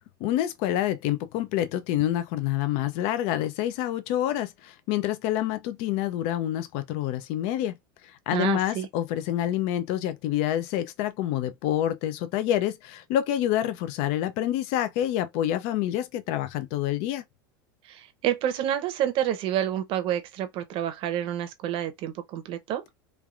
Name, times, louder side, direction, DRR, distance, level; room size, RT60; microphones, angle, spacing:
voice 1, 0.2-7.7 8.3-17.2, left 12 dB, 60° left, 0.4 m, -27 dB
voice 2, 8.3-8.9 17.9-22.8, right 11 dB, 50° right, 0.7 m, -28 dB
3.2 x 2.3 x 2.4 m
hypercardioid pair, 105°, 12 cm